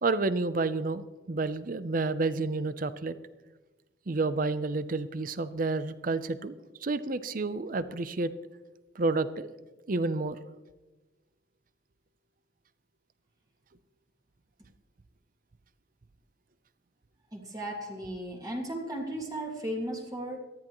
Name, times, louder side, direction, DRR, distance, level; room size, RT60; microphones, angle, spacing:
voice 1, 0.0-3.2 4.1-6.6 6.8-8.3 9.0-9.5 9.9-10.4, right 3 dB, 45° right, 14 dB, 0.6 m, -30 dB
voice 2, 17.3-20.4, right 1 dB, 20° right, 0 dB, 1.9 m, -35 dB
18.0 x 13.0 x 3.1 m, 1.2 s
head